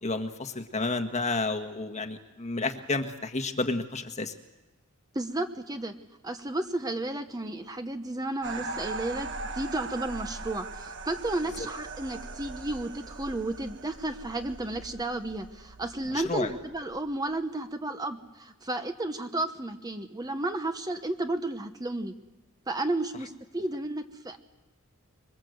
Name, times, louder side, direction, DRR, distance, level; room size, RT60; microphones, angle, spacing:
voice 1, 0.0-4.3 11.6-11.7 16.1-16.5, left 3 dB, 30° left, 6 dB, 1.5 m, -31 dB
voice 2, 5.1-5.9 6.2-22.1 22.7-24.4, right 2 dB, 15° right, 7 dB, 1.1 m, -33 dB
sound 1, 8.4-17.4, right 3 dB, 55° right, 1.4 m, -40 dB
26.0 x 23.0 x 7.9 m, 1.1 s
head